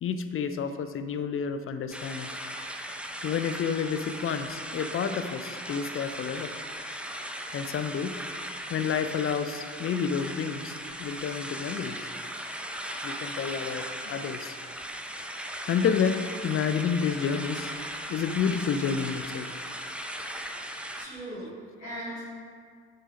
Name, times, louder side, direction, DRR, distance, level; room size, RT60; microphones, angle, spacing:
voice 1, 0.0-2.3 3.2-6.5 7.5-8.2 8.7-12.0 13.0-14.6 15.7-17.7 18.1-19.5, left 7 dB, 35° left, 10 dB, 0.7 m, -30 dB
sound 1, 1.9-21.1, equal, 5° right, 0.8 m, -38 dB
voice 2, 21.0-22.2, right 1 dB, 85° left, -14 dB, 2.6 m, -39 dB
9.0 x 6.4 x 5.1 m, 2.1 s
figure-of-eight pair, 50°, 36 cm